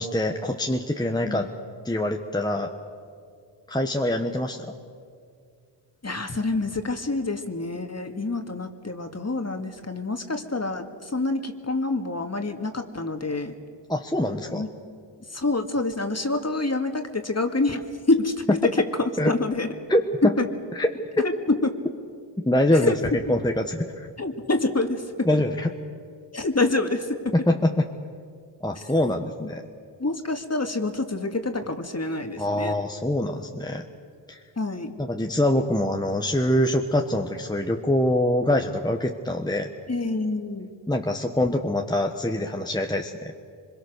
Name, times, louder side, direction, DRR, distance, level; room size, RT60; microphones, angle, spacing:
voice 1, 0.0-1.5 1.8-2.7 3.7-4.7 13.9-14.6 19.2-19.3 19.9-20.3 20.7-20.9 22.4-22.9 23.3-24.1 25.2-25.7 27.3-27.9 28.6-29.6 32.4-33.8 34.3-34.4 35.0-39.7 40.9-43.3, left 1 dB, 10° left, 3 dB, 1.3 m, -24 dB
voice 2, 1.1-1.5 6.0-13.5 14.5-14.7 15.3-19.7 20.2-20.4 21.2-21.7 22.7-23.0 24.2-25.4 26.3-27.3 28.8-28.9 29.4-29.5 30.0-32.7 34.6-34.9 39.9-40.7, left 2 dB, 30° left, 5 dB, 2.2 m, -27 dB
24.0 x 22.0 x 6.7 m, 2.3 s
cardioid pair, 45°, 50 cm